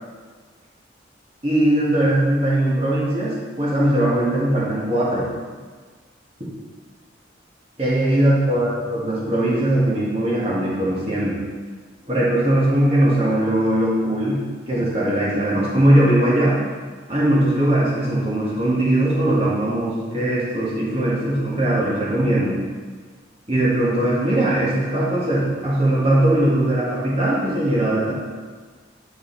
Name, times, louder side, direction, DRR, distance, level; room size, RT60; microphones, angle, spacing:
voice 1, 1.4-5.3 7.8-11.4 12.1-16.6 17.1-22.6 23.5-28.1, right 1 dB, 30° right, -6 dB, 1.7 m, -20 dB
9.4 x 4.0 x 4.0 m, 1.5 s
head